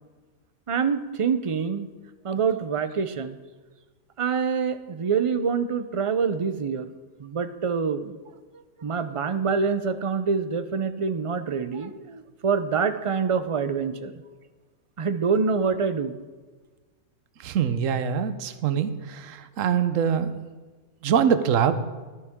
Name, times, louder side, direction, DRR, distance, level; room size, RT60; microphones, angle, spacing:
voice 1, 0.7-1.9 2.2-3.4 4.2-6.9 7.2-8.1 8.8-14.1 15.0-16.1, right 5 dB, 45° right, 11 dB, 0.4 m, -26 dB
voice 2, 17.4-20.3 21.0-21.8, right 8 dB, 75° right, 12 dB, 1.1 m, -24 dB
15.0 x 13.0 x 3.6 m, 1.3 s
omnidirectional pair, 1.4 m